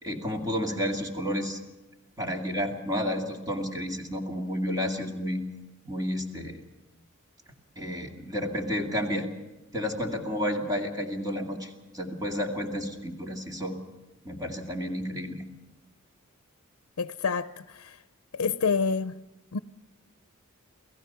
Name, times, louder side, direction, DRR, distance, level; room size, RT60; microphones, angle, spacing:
voice 1, 0.0-1.6 2.2-5.4 5.8-6.6 7.8-9.3 9.7-13.8 14.2-15.4, equal, 15° right, 2.5 m, -31 dB
voice 2, 17.0-18.0 18.3-19.2 19.5-19.6, left 5 dB, 80° left, 0.6 m, -28 dB
29.0 x 17.0 x 5.7 m
head